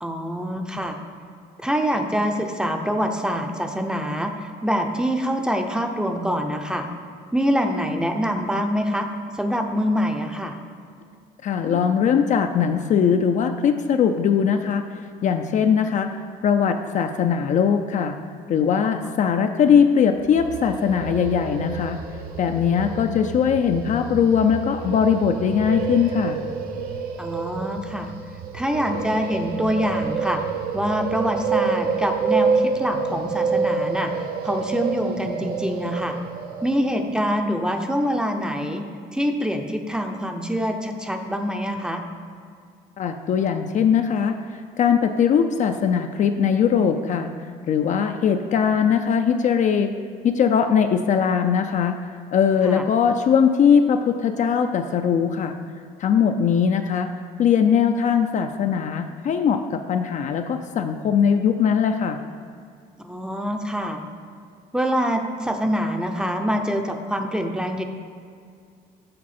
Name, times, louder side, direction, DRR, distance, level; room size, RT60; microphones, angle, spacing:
voice 1, 0.0-1.0 1.6-6.9 7.3-9.1 9.3-10.6 27.2-28.1 28.5-30.4 30.7-36.2 36.6-38.8 39.1-42.0 52.6-52.8 63.0-64.0 64.7-67.8, equal, 5° right, 4 dB, 0.5 m, -25 dB
voice 2, 11.4-14.8 15.2-16.2 16.4-18.2 18.5-22.0 22.4-26.4 43.0-44.4 44.8-47.3 47.7-49.9 50.2-52.0 52.3-55.6 56.0-57.1 57.4-62.2, left 7 dB, 45° left, 7 dB, 0.4 m, -20 dB
sound 1, 20.2-37.2, right 5 dB, 60° right, 0.7 m, -28 dB
7.5 x 4.6 x 4.2 m, 2.3 s
cardioid pair, 110°, 17 cm